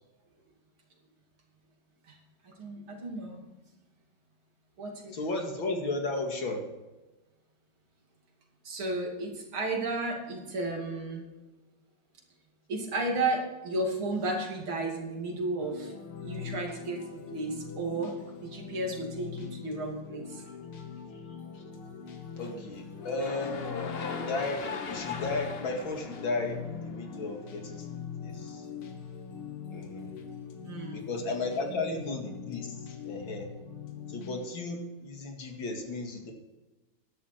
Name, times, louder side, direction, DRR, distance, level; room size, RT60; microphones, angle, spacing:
voice 1, 2.5-3.4 4.8-5.1 8.7-11.2 12.7-15.9 16.2-18.1 18.4-20.4 30.6-31.1 31.7-31.8, right 2 dB, 75° right, 0 dB, 3.4 m, -33 dB
voice 2, 5.1-6.6 21.5-21.6 22.4-23.6 24.3-24.6 24.9-27.9 28.2-28.6 29.7-30.1 30.9-32.7 33.1-33.5 34.1-36.3, left 2 dB, 65° left, 2 dB, 2.8 m, -34 dB
sound 1, 15.6-34.5, left 6 dB, 80° left, 2.3 m, -42 dB
sound 2, 23.0-27.2, left 5 dB, 35° left, 1.0 m, -39 dB
13.5 x 11.0 x 4.5 m, 1.1 s
omnidirectional pair, 2.3 m